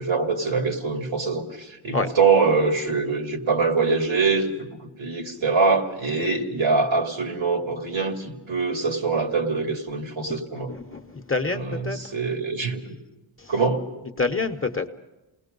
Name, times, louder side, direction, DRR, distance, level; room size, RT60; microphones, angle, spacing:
voice 1, 0.0-4.7 5.0-10.7 11.5-12.8 13.5-13.8, right 4 dB, 70° right, 2.5 m, -24 dB
voice 2, 10.5-12.1 13.4-13.5 14.2-14.9, left 3 dB, 25° left, 0.9 m, -27 dB
28.0 x 19.5 x 5.3 m
wide cardioid pair, 85°, 49 cm